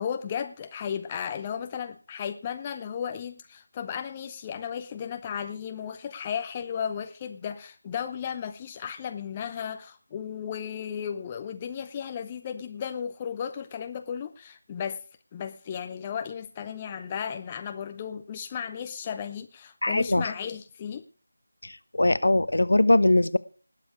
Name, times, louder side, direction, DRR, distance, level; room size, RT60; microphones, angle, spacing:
voice 1, 0.0-15.0 15.3-21.0, left 8 dB, 15° left, 8 dB, 0.5 m, -34 dB
voice 2, 19.8-20.3 21.6-21.7 22.0-23.4, left 2 dB, 60° left, 16 dB, 0.8 m, -21 dB
19.5 x 7.4 x 4.8 m, 0.39 s
figure-of-eight pair, 165°, 0 cm